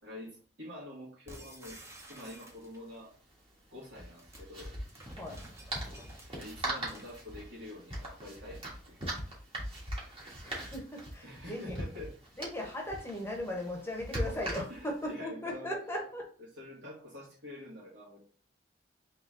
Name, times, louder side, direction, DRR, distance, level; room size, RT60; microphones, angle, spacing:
voice 1, 0.0-1.8 2.1-3.1 3.7-4.7 6.3-9.1 9.6-9.7 11.2-12.1 14.7-15.7 16.4-18.2, left 1 dB, 75° right, 2.1 m, -47 dB
sound 1, 1.3-3.0 4.0-7.3, right 1 dB, 15° right, 0.8 m, -52 dB
sound 2, 1.9-2.0 2.2-2.4 3.9-15.1, right 1 dB, 30° right, 1.5 m, -40 dB
voice 2, 10.4-11.8 12.4-16.3, left 1 dB, 15° left, 1.0 m, -38 dB
3.8 x 3.1 x 3.8 m
head